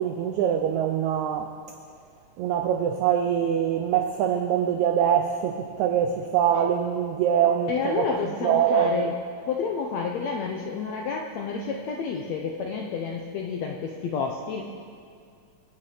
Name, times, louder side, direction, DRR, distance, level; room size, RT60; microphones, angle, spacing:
voice 1, 0.0-1.5 2.4-9.1, right 9 dB, 90° right, 6 dB, 1.6 m, -24 dB
voice 2, 7.7-9.1 9.5-14.6, left 5 dB, 75° left, 1 dB, 1.6 m, -30 dB
24.0 x 8.7 x 5.0 m, 2.2 s
omnidirectional pair, 4.1 m